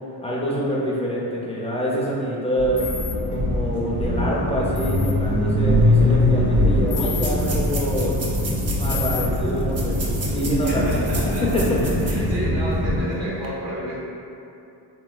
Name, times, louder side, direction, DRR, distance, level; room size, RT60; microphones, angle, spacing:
voice 1, 0.2-2.8 3.3-8.2 8.8-11.0 11.4-11.6 12.0-12.3, equal, 15° left, -6 dB, 0.4 m, -26 dB
sound 1, 2.6-13.0, left 1 dB, 60° right, 1.1 m, -22 dB
sound 2, 2.8-3.1 4.8-5.1 6.9-7.3 8.9-9.3, left 7 dB, 65° left, 0.6 m, -31 dB
sound 3, 5.8-5.9 6.1-6.2 6.9-12.3 12.7-12.8 13.3-13.5, right 3 dB, 35° right, 0.6 m, -35 dB
voice 2, 10.6-11.5 11.8-14.0, right 1 dB, 90° right, -8 dB, 1.1 m, -31 dB
3.5 x 2.9 x 2.3 m, 2.8 s
cardioid pair, 105°, 44 cm